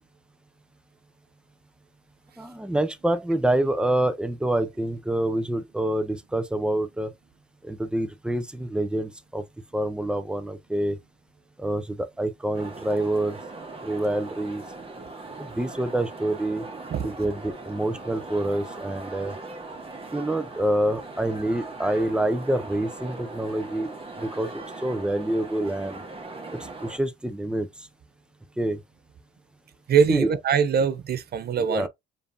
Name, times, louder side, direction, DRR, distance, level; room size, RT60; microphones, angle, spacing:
voice 1, 2.4-7.1 7.6-9.4 9.7-11.0 11.6-13.4 13.8-14.6 15.6-16.6 17.0-19.3 20.1-23.9 24.2-26.0 26.5-27.7 28.6-28.8 30.1-30.3 31.6-31.9, right 1 dB, 5° right, 0.6 m, -26 dB
sound 1, 12.5-27.0, right 3 dB, 30° right, 1.1 m, -40 dB
voice 2, 29.9-31.9, right 7 dB, 55° right, 0.6 m, -22 dB
5.0 x 2.7 x 2.6 m
cardioid pair, 90°, 20 cm